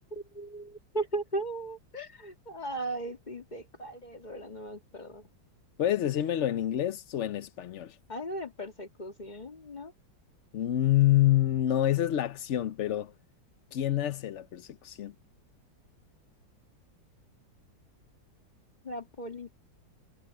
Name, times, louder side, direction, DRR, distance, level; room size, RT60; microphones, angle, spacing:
voice 1, 0.1-5.2 8.1-9.9 18.8-19.5, right 2 dB, 25° left, 2.1 m, -37 dB
voice 2, 5.8-8.0 10.5-13.1 13.7-15.1, left 13 dB, 75° left, 0.6 m, -27 dB
omnidirectional pair, 2.1 m